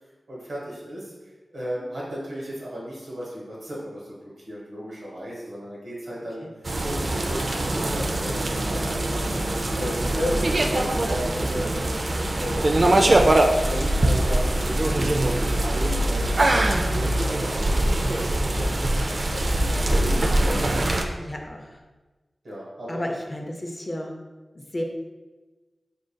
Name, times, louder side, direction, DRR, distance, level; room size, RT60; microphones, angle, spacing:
voice 1, 0.3-1.1 1.5-6.4 6.8-9.3 9.8-11.7 12.3-12.6 13.3-19.5 20.4-20.8 22.4-23.0, equal, 90° right, -6 dB, 1.3 m, -35 dB
sound 1, 6.6-21.0, right 1 dB, 55° right, 0.3 m, -23 dB
voice 2, 21.2-21.8 22.9-24.1 24.5-24.8, left 1 dB, 35° left, 2 dB, 0.5 m, -32 dB
3.8 x 3.7 x 2.2 m, 1.2 s
wide cardioid pair, 65°, 0 cm